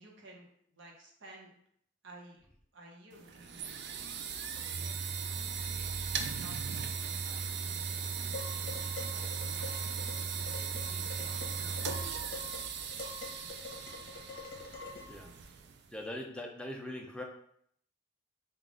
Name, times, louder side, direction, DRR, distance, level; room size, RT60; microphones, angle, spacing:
voice 1, 0.0-1.6 2.0-4.1 4.5-4.9 5.7-8.7 9.1-10.3 10.9-13.2, right 1 dB, 75° right, -2 dB, 0.9 m, -55 dB
sound 1, 3.1-15.9, right 6 dB, 60° right, 0.4 m, -37 dB
Dishes pots and pans, 8.3-15.2, left 3 dB, 50° left, 0.8 m, -46 dB
voice 2, 15.9-17.2, left 1 dB, 5° left, 0 dB, 0.4 m, -41 dB
3.6 x 2.4 x 3.6 m, 0.67 s
head